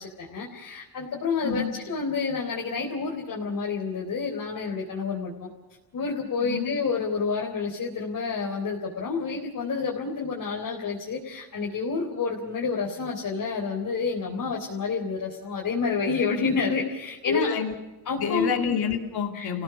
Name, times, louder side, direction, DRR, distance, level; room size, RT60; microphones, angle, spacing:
voice 1, 0.0-5.5 5.9-17.5 18.1-18.5 19.3-19.5, left 4 dB, 50° left, -1 dB, 3.9 m, -29 dB
voice 2, 1.4-1.7 6.4-6.7 17.3-17.7 18.2-19.6, left 7 dB, 65° left, 4 dB, 2.9 m, -28 dB
29.0 x 17.0 x 7.2 m, 1.1 s
cardioid pair, 120°, 41 cm